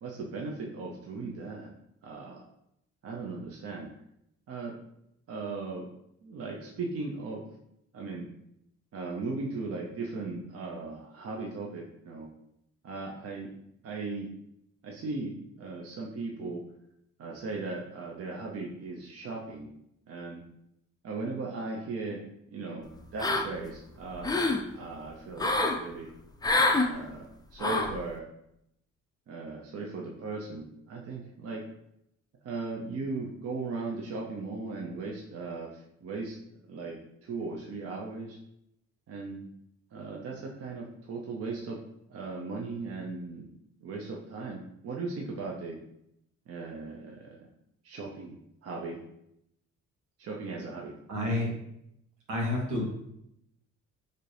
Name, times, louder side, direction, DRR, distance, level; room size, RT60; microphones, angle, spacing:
voice 1, 0.0-1.7 2.0-2.4 3.0-3.9 4.5-4.7 5.3-5.9 6.2-7.4 7.9-8.3 8.9-12.3 12.8-13.5 13.8-14.3 14.8-15.3 15.6-16.6 17.2-19.7 20.1-20.4 21.0-22.2 22.5-26.1 26.8-28.2 29.3-31.6 32.4-36.4 36.7-38.4 39.1-39.5 39.9-41.8 42.1-43.5 43.8-45.8 46.5-47.5 47.8-48.4 48.6-49.0 50.2-50.9, right 3 dB, 50° right, -1 dB, 0.6 m, -37 dB
sound 1, 23.2-23.7 24.1-24.6 25.4-25.8 26.4-26.9 27.6-28.0, left 2 dB, 15° left, 0.4 m, -26 dB
voice 2, 51.1-51.5 52.3-52.8, left 2 dB, 85° right, -2 dB, 1.3 m, -29 dB
4.1 x 2.6 x 3.2 m, 0.78 s
cardioid pair, 90°, 30 cm